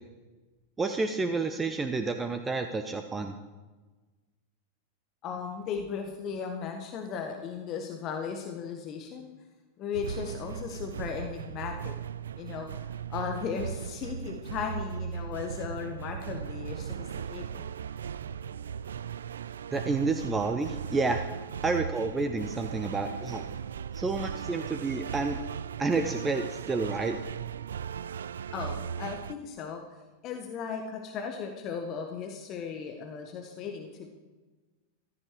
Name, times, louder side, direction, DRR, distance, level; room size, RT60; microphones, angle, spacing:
voice 1, 0.8-3.3 19.7-21.2 21.6-23.4 23.9-25.4 25.8-27.2, right 3 dB, 15° right, 7 dB, 0.9 m, -29 dB
voice 2, 5.2-9.3 9.8-11.9 12.4-17.7 28.5-29.8 30.2-34.1, left 6 dB, 35° left, 4 dB, 1.6 m, -36 dB
sound 1, 9.9-29.3, right 8 dB, 65° right, 0.3 m, -38 dB
15.0 x 13.5 x 4.7 m, 1.2 s
figure-of-eight pair, 90°, 0 cm